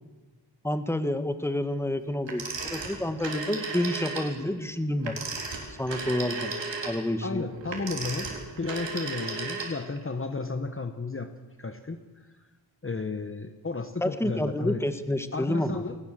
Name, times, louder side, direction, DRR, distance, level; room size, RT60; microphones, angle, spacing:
voice 1, 0.6-5.2 5.8-6.5 6.8-7.4 14.0-15.8, left 1 dB, 5° left, 10 dB, 1.6 m, -29 dB
Telephone, 2.3-4.3 5.0-10.0, right 3 dB, 85° right, 4.3 m, -35 dB
voice 2, 7.2-11.3 11.6-12.5 12.8-14.8 15.3-16.0, left 3 dB, 30° left, 8 dB, 1.2 m, -33 dB
21.5 x 18.5 x 7.6 m, 1.3 s
wide cardioid pair, 75°, 43 cm